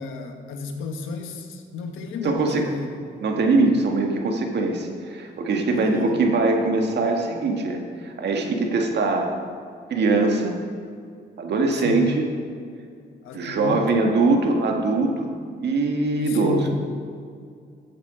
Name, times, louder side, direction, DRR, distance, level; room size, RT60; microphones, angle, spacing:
voice 1, 0.0-2.9 5.7-6.2 11.8-12.0 13.2-14.1 16.2-16.7, left 4 dB, 85° left, 4 dB, 1.5 m, -32 dB
voice 2, 2.2-2.7 3.2-9.3 9.9-10.6 11.4-12.2 13.3-15.3 15.6-16.6, right 3 dB, 60° right, 3 dB, 1.8 m, -22 dB
13.0 x 8.3 x 5.1 m, 2.2 s
cardioid pair, 90°, 20 cm